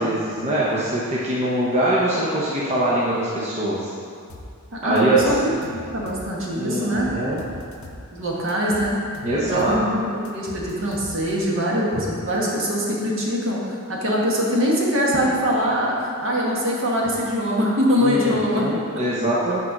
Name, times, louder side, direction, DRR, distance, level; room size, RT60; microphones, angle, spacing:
voice 1, 0.0-3.9 4.8-5.2 6.5-7.4 9.2-9.8 18.0-19.6, right 1 dB, 30° right, -6 dB, 0.8 m, -23 dB
sound 1, 4.3-4.5 5.0-6.3 6.7-8.1 8.5-9.8 10.2-11.4, left 1 dB, 65° left, 0.7 m, -40 dB
voice 2, 4.7-7.1 8.1-9.0 9.4-13.6 13.9-18.7, equal, 60° right, -3 dB, 1.4 m, -23 dB
6.5 x 4.4 x 5.9 m, 2.5 s
head